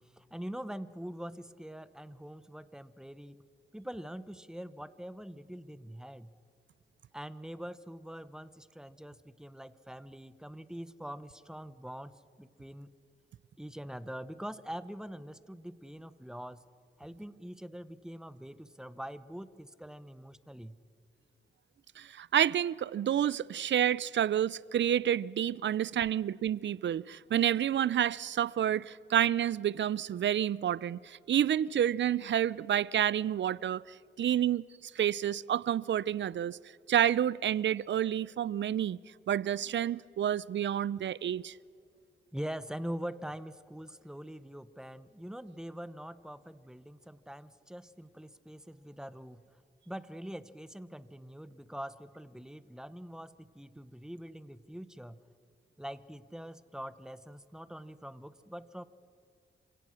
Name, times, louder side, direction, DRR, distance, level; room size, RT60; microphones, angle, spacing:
voice 1, 0.0-3.4 3.7-6.3 7.1-13.0 13.6-16.6 17.0-20.7 42.3-49.5 49.9-55.2 55.8-58.9, equal, 5° right, 0.9 m, -44 dB
voice 2, 22.0-36.6 36.9-39.0 39.3-41.5, right 10 dB, 70° right, 0.4 m, -29 dB
27.0 x 17.0 x 6.3 m
cardioid pair, 65°, 20 cm